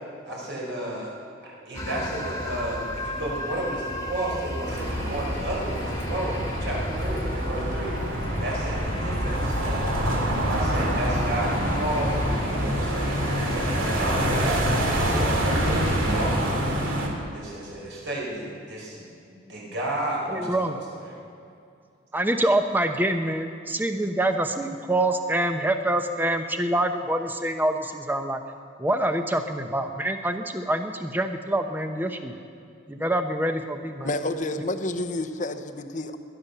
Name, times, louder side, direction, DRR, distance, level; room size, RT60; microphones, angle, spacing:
voice 1, 0.3-1.1 1.4-14.6 15.0-17.0 17.3-21.2, right 1 dB, 60° right, -3 dB, 5.0 m, -32 dB
sound 1, 1.7-16.4, equal, 15° left, 1.4 m, -32 dB
sound 2, 4.7-17.1, right 1 dB, 85° right, 2.6 m, -27 dB
voice 2, 20.3-20.8 22.1-28.4 28.8-32.3 32.9-34.1, right 1 dB, 10° right, 6 dB, 0.8 m, -26 dB
voice 3, 34.0-36.2, left 2 dB, 40° left, 9 dB, 0.8 m, -29 dB
18.5 x 11.5 x 6.8 m, 2.5 s
head